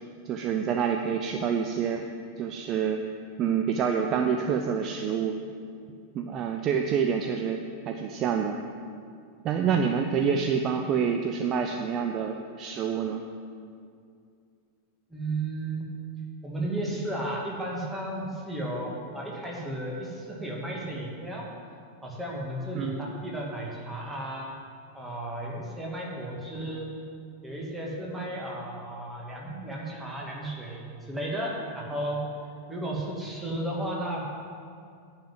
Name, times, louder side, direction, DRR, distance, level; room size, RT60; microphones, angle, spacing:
voice 1, 0.3-2.1 2.4-3.0 3.4-5.4 6.1-8.6 9.4-13.2 22.7-23.1, right 7 dB, 35° right, 5 dB, 0.5 m, -27 dB
voice 2, 15.1-15.9 16.4-21.4 22.0-24.5 24.9-26.9 27.4-32.2 32.7-34.4, right 1 dB, 10° right, -3 dB, 2.3 m, -34 dB
10.0 x 5.7 x 7.9 m, 2.3 s
figure-of-eight pair, 90°, 0 cm